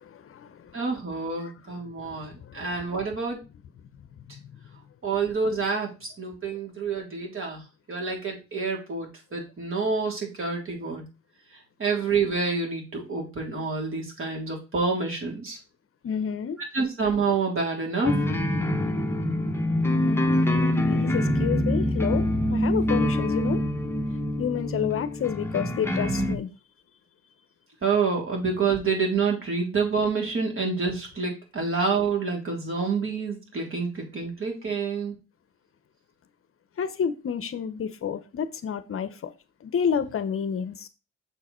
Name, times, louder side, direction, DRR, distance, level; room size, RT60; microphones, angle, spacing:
voice 1, 0.0-0.9 1.4-1.5 2.0-2.7 16.0-16.6 19.9-20.3 20.8-23.6 24.4-26.5 36.8-39.3 39.6-40.9, left 7 dB, 45° left, 0.8 m, -30 dB
voice 2, 0.7-3.4 5.0-7.6 7.9-11.0 11.5-15.6 16.7-18.2 27.8-35.2, right 4 dB, 45° right, 3.5 m, -28 dB
sound 1, 18.1-26.4, left 1 dB, 10° left, 1.1 m, -25 dB
6.8 x 4.7 x 4.3 m
cardioid pair, 90°, 30 cm